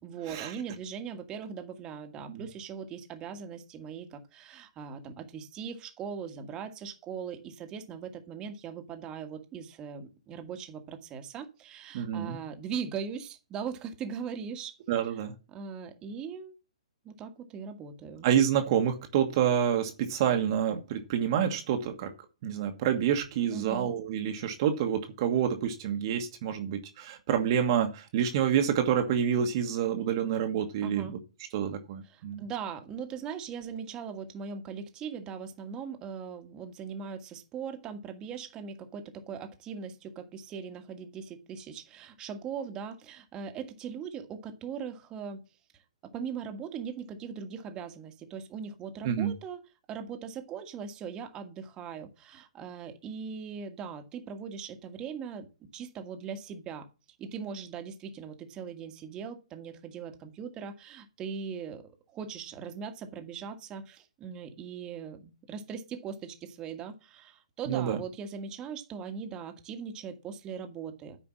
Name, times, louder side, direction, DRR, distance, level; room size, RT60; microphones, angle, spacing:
voice 1, 0.0-14.8 15.5-16.5 17.0-18.3 23.5-23.9 30.8-31.1 32.0-45.4 46.0-49.6 49.9-56.9 57.2-71.2, right 6 dB, 20° right, 1.6 m, -40 dB
voice 2, 11.9-12.4 14.9-15.3 18.2-22.1 22.4-31.1 31.5-32.4 49.0-49.3 67.7-68.0, right 9 dB, 40° right, 1.5 m, -28 dB
9.8 x 5.0 x 7.3 m
figure-of-eight pair, 125°, 4 cm